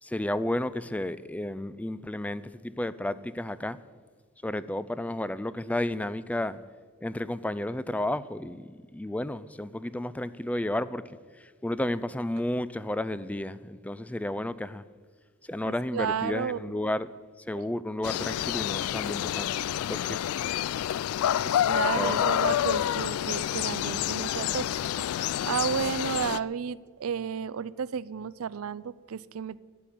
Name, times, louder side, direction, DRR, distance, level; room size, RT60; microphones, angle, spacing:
voice 1, 0.0-3.8 4.4-6.6 7.0-11.0 11.6-14.8 15.5-17.1 17.5-19.6 19.9-20.2 22.0-22.3, left 1 dB, 5° left, 0.4 m, -32 dB
voice 2, 15.6-16.8 17.5-17.7 21.7-29.6, right 7 dB, 80° right, 0.5 m, -32 dB
sound 1, 18.0-26.4, left 11 dB, 90° left, 0.3 m, -28 dB
13.0 x 7.7 x 10.0 m
head